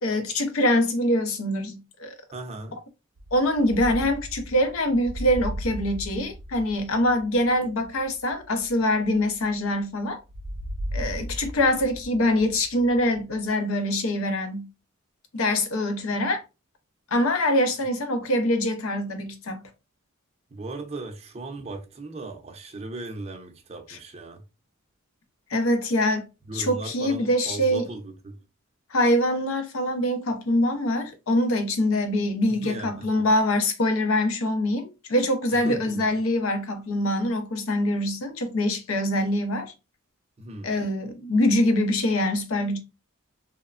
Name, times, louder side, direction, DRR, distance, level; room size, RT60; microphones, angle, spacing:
voice 1, 0.0-2.1 3.3-10.2 10.9-14.7 15.3-16.4 17.1-19.6 23.9-24.0 25.5-26.2 26.5-27.9 28.9-39.7 40.6-42.8, left 1 dB, 70° left, 0.6 m, -24 dB
voice 2, 2.3-2.8 20.5-24.4 26.5-28.4 32.5-33.3 35.5-36.1 40.4-40.8, right 2 dB, 30° right, 0.5 m, -37 dB
sound 1, 3.2-9.8 10.3-13.5, equal, 90° right, 0.5 m, -37 dB
3.0 x 2.1 x 2.4 m
head